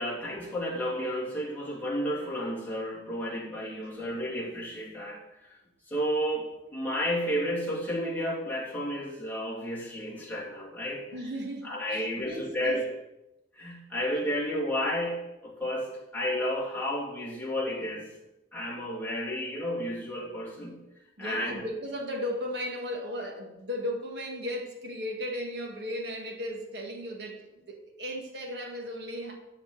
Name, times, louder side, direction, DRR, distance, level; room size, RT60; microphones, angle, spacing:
voice 1, 0.0-5.6 5.9-11.1 11.6-12.9 13.5-18.1 18.5-20.8 21.2-21.7, equal, 10° left, -5 dB, 2.6 m, -32 dB
voice 2, 3.6-4.4 11.1-12.8 21.2-29.4, equal, 60° right, 1 dB, 1.7 m, -36 dB
13.0 x 4.3 x 6.9 m, 0.94 s
head